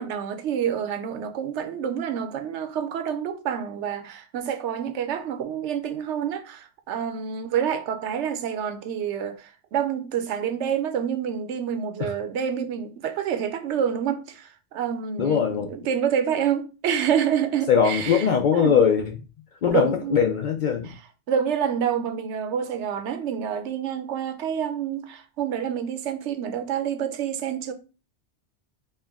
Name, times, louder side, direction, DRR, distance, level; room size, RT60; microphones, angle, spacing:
voice 1, 0.0-18.2 18.5-18.8 19.7-20.2 20.8-20.9 21.3-27.7, right 8 dB, 80° right, 0.9 m, -28 dB
voice 2, 15.2-15.7 17.7-19.2 19.6-20.9, left 7 dB, 60° left, 0.5 m, -21 dB
4.4 x 2.2 x 3.4 m
omnidirectional pair, 1.2 m